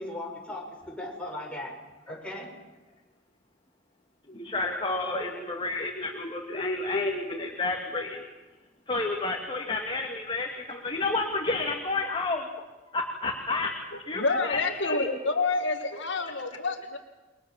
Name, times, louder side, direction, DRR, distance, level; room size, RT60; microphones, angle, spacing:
voice 1, 0.0-1.8 2.1-2.5 5.1-5.5, left 1 dB, 5° left, -1 dB, 6.2 m, -38 dB
voice 2, 4.3-8.2 8.9-12.5 12.9-13.7 14.1-15.1, left 3 dB, 25° left, 2 dB, 2.5 m, -30 dB
voice 3, 13.9-17.0, left 3 dB, 65° left, 5 dB, 2.3 m, -28 dB
29.0 x 23.0 x 7.5 m, 1.2 s
head